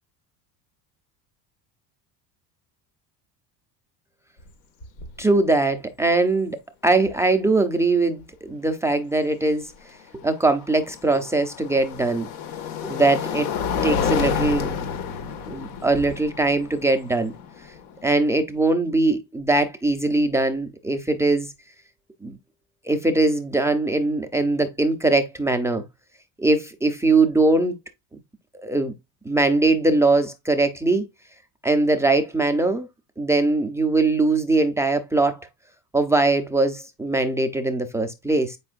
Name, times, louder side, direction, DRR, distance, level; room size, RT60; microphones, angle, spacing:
sound 1, 4.4-4.5 4.8-5.2 7.1-7.2 10.1-18.3, left 6 dB, 70° left, 1.8 m, -29 dB
voice 1, 5.2-6.6 6.8-9.7 10.2-12.3 12.8-13.5 13.8-14.7 15.5-17.3 18.0-21.5 22.2-22.4 22.9-25.8 26.4-27.8 28.6-28.9 29.3-31.1 31.6-32.9 33.2-35.5 35.9-38.6, right 2 dB, 5° right, 0.5 m, -21 dB
8.3 x 5.4 x 2.4 m
cardioid pair, 165°, 40 cm